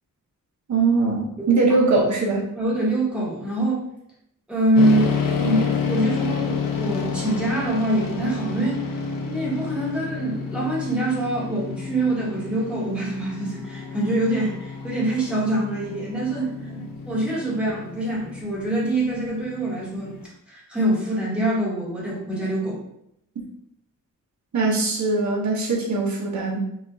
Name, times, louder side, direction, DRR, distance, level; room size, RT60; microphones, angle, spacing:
voice 1, 0.7-2.4 16.7-16.9 24.5-26.6, right 3 dB, 55° right, -1 dB, 0.9 m, -21 dB
voice 2, 2.5-3.9 4.5-9.0 9.3-16.7 17.1-20.1 20.5-22.8, right 1 dB, 5° right, -7 dB, 1.2 m, -24 dB
sound 1, 4.8-20.2, left 5 dB, 80° left, 0.6 m, -30 dB
5.0 x 2.4 x 2.7 m, 0.77 s
wide cardioid pair, 175°, 33 cm